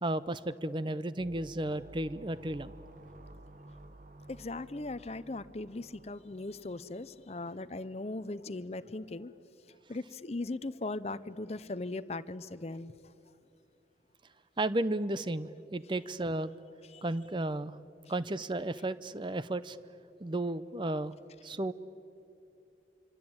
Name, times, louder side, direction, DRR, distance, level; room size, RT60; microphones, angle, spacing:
voice 1, 0.0-2.7 14.6-16.5 17.0-17.8 18.1-19.8 20.2-21.1 21.4-21.7, right 1 dB, 25° right, 15 dB, 0.7 m, -33 dB
sound 1, 1.2-7.6, right 1 dB, 45° right, 1.2 m, -53 dB
voice 2, 4.3-9.3 9.9-12.9 16.9-17.0, left 2 dB, 35° left, 15 dB, 0.7 m, -39 dB
26.5 x 25.0 x 8.8 m, 2.7 s
head